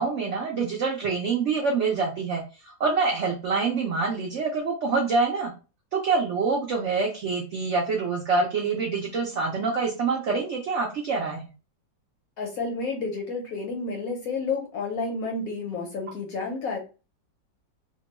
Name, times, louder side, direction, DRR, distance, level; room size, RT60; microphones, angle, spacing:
voice 1, 0.0-5.5 5.9-11.4, right 4 dB, 75° right, 0 dB, 0.6 m, -26 dB
voice 2, 12.4-16.8, left 4 dB, 65° left, 1 dB, 0.9 m, -30 dB
2.9 x 2.2 x 2.9 m, 0.33 s
omnidirectional pair, 1.9 m